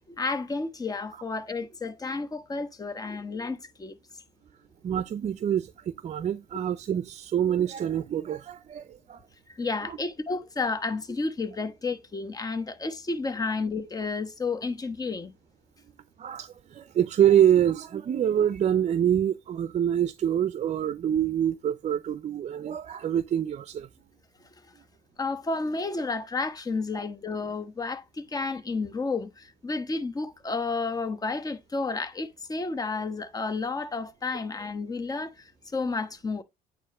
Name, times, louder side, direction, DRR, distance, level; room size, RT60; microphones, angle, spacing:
voice 1, 0.1-4.0 9.5-15.3 25.2-36.4, left 3 dB, 20° left, 1.1 m, -31 dB
voice 2, 4.8-9.2 9.8-10.0 16.2-23.9, right 10 dB, 40° right, 0.5 m, -26 dB
9.0 x 3.0 x 4.9 m
cardioid pair, 110°, 17 cm